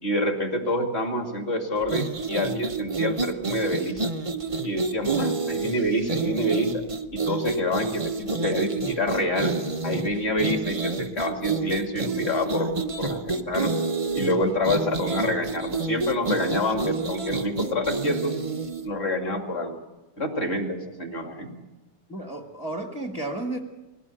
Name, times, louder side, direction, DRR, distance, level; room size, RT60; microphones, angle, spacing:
voice 1, 0.0-4.0 4.6-6.8 7.1-9.6 9.8-13.8 14.1-18.4 18.8-19.8 20.2-21.5, left 1 dB, 30° left, 4 dB, 2.4 m, -27 dB
sound 1, 1.8-18.9, right 3 dB, 60° right, 0.3 m, -29 dB
voice 2, 22.1-23.6, right 2 dB, 5° right, 4 dB, 1.1 m, -32 dB
21.0 x 16.5 x 8.8 m, 1.1 s
omnidirectional pair, 2.2 m